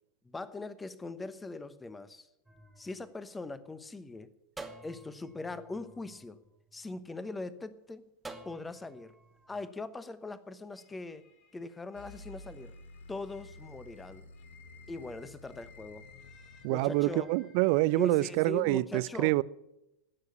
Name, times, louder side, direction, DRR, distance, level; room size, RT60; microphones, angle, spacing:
voice 1, 0.2-2.3 2.8-4.3 4.8-6.4 6.7-8.0 8.4-9.1 9.5-11.2 11.5-12.7 13.1-14.2 14.9-16.1 16.7-17.3 18.0-19.4, left 3 dB, 10° left, 15 dB, 1.0 m, -41 dB
sound 1, 2.5-3.9 4.6-7.1 8.2-9.6, right 3 dB, 10° right, 1.5 m, -51 dB
sound 2, 10.7-18.1, left 7 dB, 40° left, 1.9 m, -60 dB
sound 3, 11.9-17.2, left 2 dB, 70° left, 1.1 m, -52 dB
voice 2, 16.6-19.4, right 20 dB, 50° right, 19 dB, 0.5 m, -26 dB
16.5 x 6.6 x 9.5 m, 0.88 s
figure-of-eight pair, 90°, 0 cm